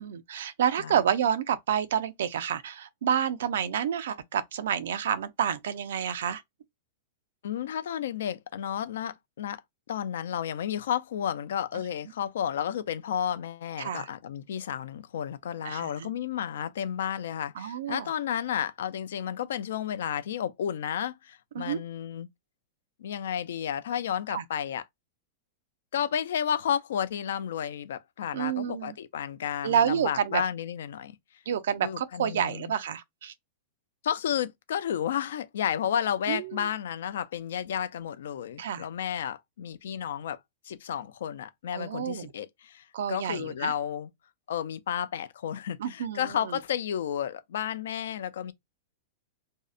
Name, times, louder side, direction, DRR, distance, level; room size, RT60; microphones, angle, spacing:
voice 1, 0.0-6.4 13.8-14.1 15.6-16.1 17.6-18.1 21.5-21.8 24.3-24.4 28.3-29.0 29.6-30.4 31.5-33.3 36.3-36.7 38.6-38.9 41.7-42.3 42.9-43.7 45.8-46.6, right 8 dB, 75° right, 0.4 m, -29 dB
voice 2, 7.4-9.6 9.9-22.3 23.0-24.8 25.9-31.2 31.8-32.7 34.0-40.4 40.6-44.1 44.5-48.5, left 9 dB, 80° left, 0.3 m, -32 dB
2.6 x 2.0 x 2.3 m
supercardioid pair, 165°, 0 cm